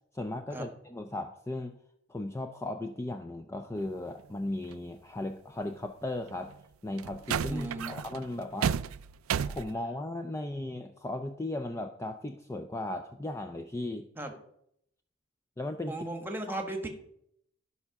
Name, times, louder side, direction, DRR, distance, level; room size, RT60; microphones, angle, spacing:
voice 1, 0.1-1.8 2.1-6.5 6.8-8.8 9.4-14.1 15.6-16.0, left 1 dB, 15° left, 7 dB, 0.4 m, -36 dB
sound 1, 4.7-4.8 6.3-6.5 7.0-9.7, right 7 dB, 85° right, 0.4 m, -32 dB
voice 2, 7.5-8.0 14.2-14.3 15.9-16.9, right 2 dB, 10° right, 5 dB, 1.3 m, -36 dB
12.5 x 5.6 x 5.8 m, 0.74 s
head